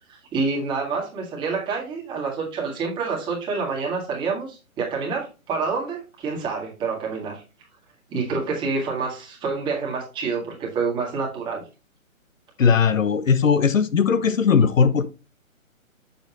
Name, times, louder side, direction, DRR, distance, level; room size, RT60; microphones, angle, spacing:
voice 1, 0.1-7.4 8.1-11.6, right 4 dB, 10° right, 1.8 m, -27 dB
voice 2, 12.6-15.1, left 6 dB, 65° left, 1.0 m, -18 dB
7.6 x 7.1 x 2.9 m
hypercardioid pair, 155°, 42 cm